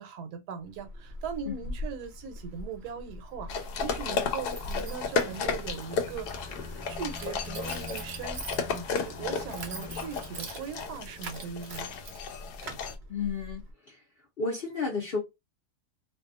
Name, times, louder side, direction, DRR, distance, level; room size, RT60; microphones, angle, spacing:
voice 1, 0.0-6.5 6.9-12.0, right 6 dB, 75° right, 1.1 m, -40 dB
Keys jangling, 0.6-13.7, right 1 dB, 55° right, 0.7 m, -42 dB
sound 1, 3.5-12.9, left 5 dB, 80° left, 1.1 m, -34 dB
sound 2, 3.8-12.2, left 2 dB, 5° left, 1.0 m, -47 dB
voice 2, 13.1-14.0 14.4-15.2, left 4 dB, 55° left, 0.7 m, -32 dB
2.6 x 2.3 x 2.4 m
omnidirectional pair, 1.7 m